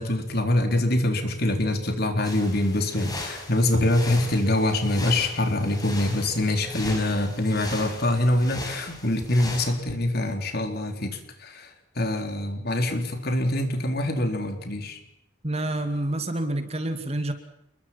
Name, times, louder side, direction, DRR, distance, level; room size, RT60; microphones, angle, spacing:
voice 1, 0.0-15.0, left 1 dB, 50° left, 5 dB, 4.0 m, -24 dB
sound 1, 2.2-9.7, left 2 dB, 20° left, 5.9 m, -38 dB
voice 2, 15.4-17.3, right 1 dB, 30° right, 8 dB, 2.4 m, -28 dB
28.5 x 22.0 x 5.9 m, 0.79 s
head